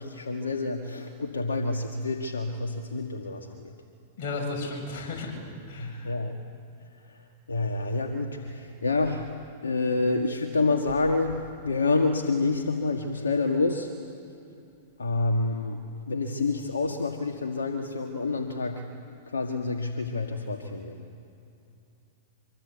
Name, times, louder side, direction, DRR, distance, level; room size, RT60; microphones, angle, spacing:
voice 1, 0.0-3.7 5.8-6.5 7.0-9.3 9.6-13.9 15.0-15.8 16.1-18.8 19.3-21.0, left 3 dB, 80° left, 4 dB, 1.7 m, -28 dB
voice 2, 4.2-5.4 5.7-6.1, left 3 dB, 50° left, 0 dB, 7.9 m, -34 dB
25.5 x 23.5 x 8.2 m, 2.8 s
hypercardioid pair, 105°, 0 cm